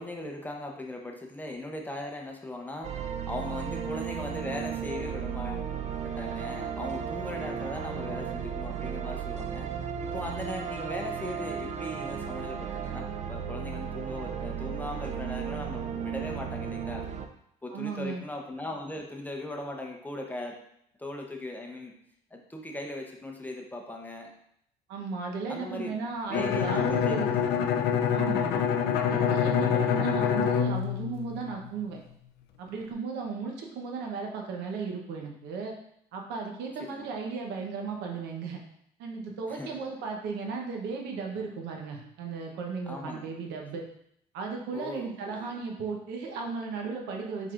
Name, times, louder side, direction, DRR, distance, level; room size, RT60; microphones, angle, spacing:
voice 1, 0.0-2.9 3.3-5.7 6.0-9.7 10.1-17.0 17.6-20.6 21.0-21.9 22.3-24.3 25.5-25.9 26.3-27.6 36.8-37.1 39.5-39.9 42.9-43.3 44.7-45.5, left 1 dB, 10° left, 1 dB, 0.7 m, -39 dB
sound 1, 2.8-17.3, right 7 dB, 45° right, 0.4 m, -35 dB
voice 2, 17.7-18.2 24.9-27.3 28.1-28.7 29.1-32.0 32.6-35.7 36.1-38.6 39.0-43.8 44.3-47.5, right 4 dB, 90° right, 1 dB, 0.9 m, -35 dB
Bowed string instrument, 26.3-32.0, left 8 dB, 80° left, 0.4 m, -26 dB
4.6 x 3.8 x 2.4 m, 0.72 s
cardioid pair, 110°, 17 cm